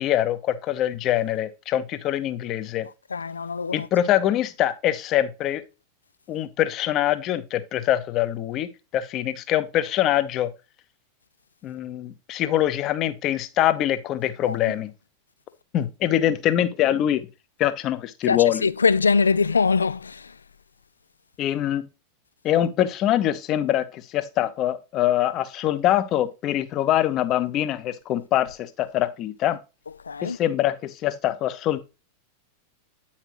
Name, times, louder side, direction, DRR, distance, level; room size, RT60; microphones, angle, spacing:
voice 1, 0.0-2.9 3.7-5.6 6.3-10.5 11.6-14.9 15.7-17.2 17.6-18.7 21.4-21.9 22.4-29.6 30.2-31.8, left 12 dB, 35° left, 0.8 m, -24 dB
voice 2, 3.1-3.9 14.5-14.6 18.3-20.3 30.1-30.4, left 5 dB, 75° left, 0.3 m, -22 dB
8.9 x 5.8 x 3.0 m
figure-of-eight pair, 90°, 0 cm